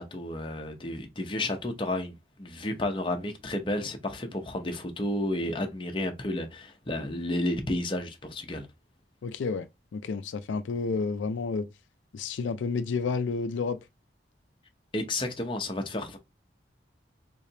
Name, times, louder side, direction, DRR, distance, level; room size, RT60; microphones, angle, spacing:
voice 1, 0.0-8.7 14.9-16.2, left 1 dB, 25° left, 0.7 m, -32 dB
voice 2, 9.2-9.7 9.9-11.7 12.1-13.8, left 4 dB, 85° left, 0.4 m, -30 dB
3.8 x 3.3 x 2.7 m
head